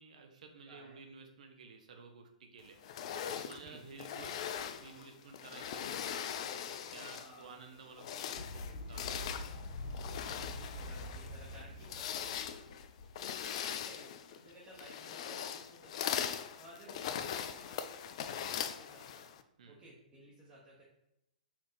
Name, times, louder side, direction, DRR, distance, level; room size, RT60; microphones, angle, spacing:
voice 1, 0.0-2.8 3.3-4.4 4.8-9.4 19.6-19.8, right 4 dB, 60° right, 4 dB, 0.8 m, -53 dB
voice 2, 0.7-1.0 3.6-3.8 5.4-5.6 7.1-7.6 10.4-12.3 13.2-19.3 19.7-20.8, right 1 dB, 20° right, -6 dB, 1.0 m, -56 dB
sound 1, 2.8-7.4 7.9-19.4, left 9 dB, 50° left, 0.3 m, -41 dB
Fowl, 8.3-13.6, left 1 dB, 70° left, 1.7 m, -45 dB
4.4 x 2.8 x 3.9 m, 0.82 s
figure-of-eight pair, 120°, 4 cm